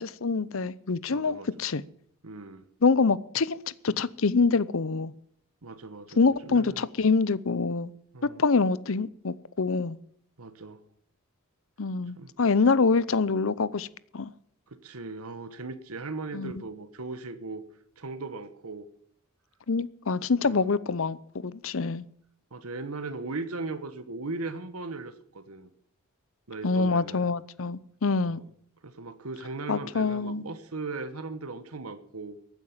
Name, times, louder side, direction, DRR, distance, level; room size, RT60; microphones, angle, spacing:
voice 1, 0.0-1.8 2.8-3.6 3.8-5.1 6.2-7.9 8.4-10.0 11.8-13.9 14.1-14.3 16.3-16.5 19.7-22.1 26.6-28.4 29.7-30.4, left 4 dB, 65° left, 0.7 m, -25 dB
voice 2, 1.1-1.5 2.2-2.6 5.6-6.8 8.1-8.4 10.4-10.8 12.2-12.3 14.7-17.6 18.0-18.9 20.4-20.7 22.5-25.7 26.5-27.3 28.2-28.4 28.8-32.4, right 3 dB, 85° right, 1.3 m, -38 dB
15.5 x 9.3 x 7.4 m
head